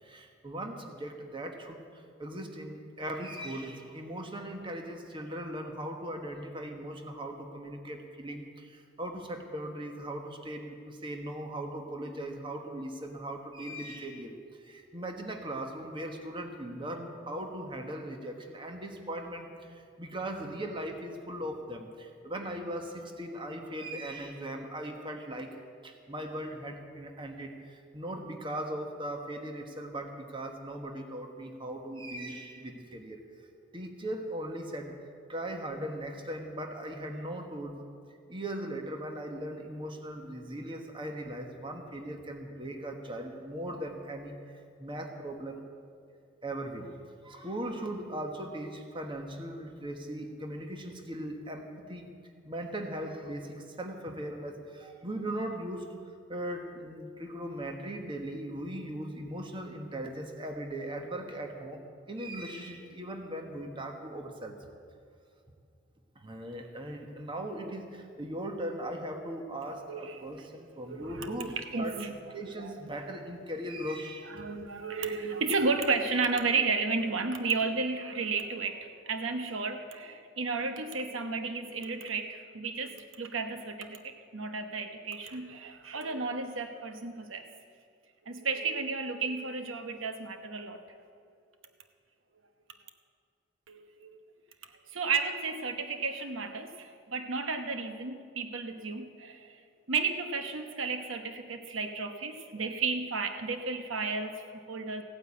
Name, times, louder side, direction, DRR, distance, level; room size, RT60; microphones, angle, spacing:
voice 1, 0.0-25.6 25.8-33.2 33.7-34.9 35.3-37.9 38.3-45.6 46.4-47.0 47.2-52.1 52.4-55.9 56.3-64.6 66.1-74.4, right 1 dB, 25° right, 4 dB, 1.3 m, -39 dB
voice 2, 69.9-70.2 70.9-72.1 72.4-72.7 74.3-87.4 88.3-90.8 93.7-94.2 94.9-99.6 99.9-105.0, right 4 dB, 80° right, 7 dB, 1.0 m, -33 dB
15.5 x 9.4 x 8.4 m, 2.3 s
head